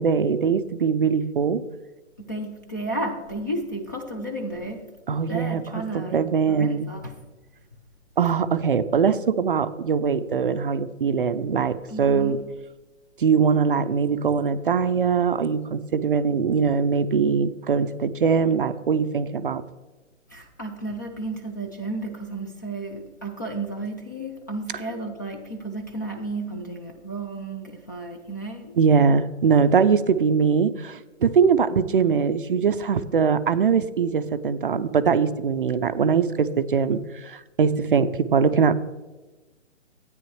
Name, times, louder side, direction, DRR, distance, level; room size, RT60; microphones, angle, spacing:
voice 1, 0.0-1.6 5.1-6.9 8.2-12.4 13.2-19.6 28.8-38.7, right 6 dB, 45° right, 12 dB, 0.5 m, -22 dB
voice 2, 2.2-4.9 5.3-7.2 11.9-12.4 20.3-28.7, right 2 dB, 15° left, 3 dB, 0.4 m, -33 dB
13.0 x 9.3 x 3.1 m, 1.2 s
figure-of-eight pair, 140°, 37 cm